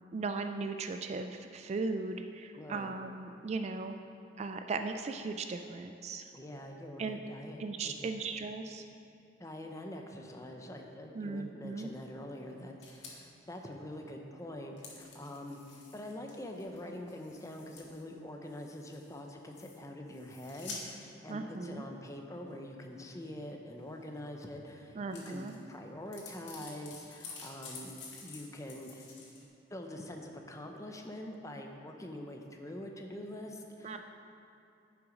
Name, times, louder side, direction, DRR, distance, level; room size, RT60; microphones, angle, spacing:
voice 1, 0.1-3.9 4.4-6.2 7.0-7.2 7.6-8.8 11.1-11.9 21.3-21.8 25.0-25.5 33.8-34.0, right 3 dB, 35° right, 6 dB, 0.3 m, -37 dB
voice 2, 2.5-2.9 6.3-8.1 9.4-15.6 15.9-27.9 28.2-29.1 29.7-34.0, left 1 dB, 15° left, 3 dB, 0.7 m, -45 dB
sound 1, 12.8-13.1 13.7-13.8 14.0-14.1 14.8-18.1 18.5-19.2 19.5-19.8 20.1-20.9 21.7-21.8 24.7-24.8 25.0-25.7 26.1-29.4, left 4 dB, 85° left, 1.7 m, -49 dB
9.9 x 5.9 x 5.1 m, 2.7 s
head